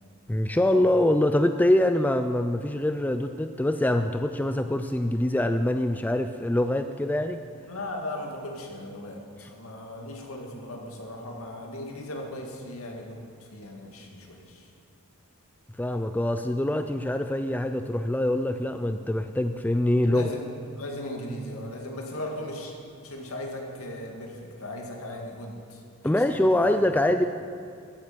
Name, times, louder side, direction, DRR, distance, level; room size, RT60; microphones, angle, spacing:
voice 1, 0.3-7.4 9.4-9.5 15.8-20.3 26.0-27.2, left 1 dB, 5° left, 8 dB, 0.3 m, -24 dB
voice 2, 7.7-14.7 20.0-20.5 20.8-22.7 23.0-27.1, left 1 dB, 70° left, 1 dB, 2.2 m, -38 dB
14.5 x 9.2 x 7.3 m, 2.4 s
head